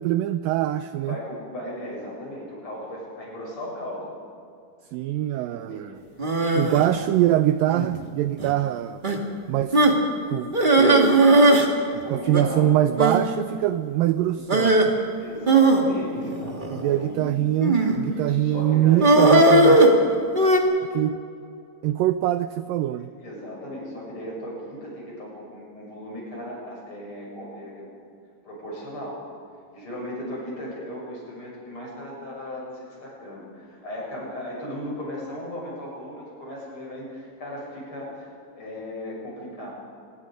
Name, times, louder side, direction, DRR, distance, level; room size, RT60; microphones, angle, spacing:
voice 1, 0.0-1.2 4.9-5.9 6.6-9.0 9.5-9.8 10.3-11.3 12.1-15.0 16.7-19.8 20.9-21.2 21.8-23.1, right 13 dB, 85° right, 12 dB, 2.0 m, -23 dB
voice 2, 1.0-4.1 5.3-6.0 6.7-7.1 12.0-12.7 14.3-14.4 15.2-17.3 18.0-19.4 23.0-27.9 28.4-29.2 29.7-39.7, left 1 dB, 30° left, -4 dB, 7.9 m, -36 dB
sound 1, 6.2-6.9 7.7-8.0 8.4-8.5 9.0-9.2 9.7-10.0 10.5-11.7 11.9-12.0 12.3-12.4 13.0-13.2 14.5-14.9 15.5-16.8 17.6-18.0 19.0-20.6, right 2 dB, 30° right, 0.8 m, -18 dB
27.0 x 20.5 x 5.2 m, 2.4 s
omnidirectional pair, 4.6 m